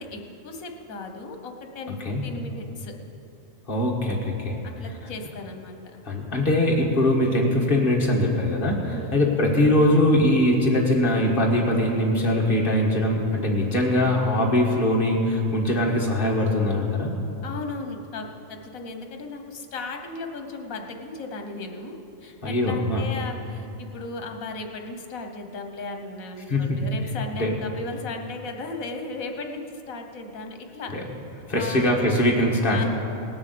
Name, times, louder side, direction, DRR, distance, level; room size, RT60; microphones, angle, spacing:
voice 1, 0.0-3.0 4.6-5.8 8.8-9.2 17.4-30.9 31.6-31.9 32.7-32.8, left 3 dB, 80° left, 5 dB, 1.5 m, -36 dB
voice 2, 3.7-4.6 6.1-17.1 22.4-23.1 26.5-26.8 27.4-27.5 30.9-31.0 31.5-32.8, left 1 dB, 40° left, -1 dB, 1.9 m, -22 dB
18.5 x 7.0 x 6.9 m, 2.8 s
omnidirectional pair, 1.4 m